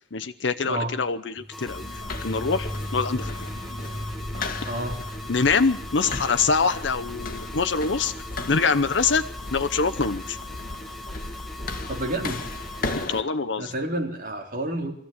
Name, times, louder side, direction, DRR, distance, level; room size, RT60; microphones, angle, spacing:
voice 1, 0.1-3.3 4.4-4.5 5.3-8.1 8.5-9.2 9.5-10.4 13.1-13.7, left 4 dB, 65° left, 8 dB, 0.8 m, -24 dB
sound 1, 1.4-11.2, equal, 20° right, 1.3 m, -39 dB
sound 2, 1.5-13.1, left 1 dB, ahead, 0.9 m, -41 dB
sound 3, 1.7-13.2, left 2 dB, 50° left, 1.9 m, -35 dB
voice 2, 4.6-4.9 11.9-12.5 13.6-14.9, right 1 dB, 45° right, 2 dB, 3.6 m, -29 dB
22.5 x 14.5 x 8.7 m, 0.65 s
head